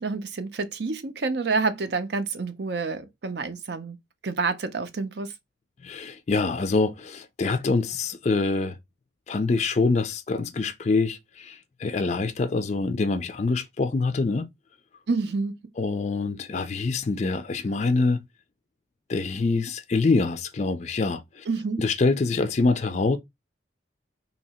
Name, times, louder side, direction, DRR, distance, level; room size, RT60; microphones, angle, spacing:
voice 1, 0.0-4.0 4.2-5.3 15.1-15.6 21.5-21.9, right 4 dB, 60° right, 0.6 m, -28 dB
voice 2, 5.8-8.8 9.3-14.5 15.8-18.2 19.1-21.4 21.8-23.2, left 3 dB, 35° left, 0.4 m, -25 dB
2.8 x 2.8 x 4.2 m
head